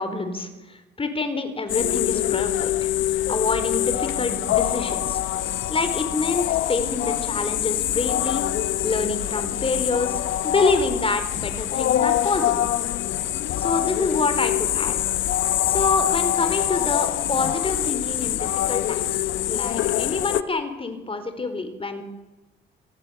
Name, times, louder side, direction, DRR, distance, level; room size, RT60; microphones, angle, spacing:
voice 1, 0.0-2.9 3.3-5.2 5.7-12.7 13.6-15.0 15.7-22.0, left 3 dB, 30° left, 9 dB, 4.4 m, -27 dB
sound 1, 1.7-20.4, left 13 dB, 75° left, 0.9 m, -24 dB
27.0 x 16.5 x 8.3 m, 1.1 s
cardioid pair, 90°, 20 cm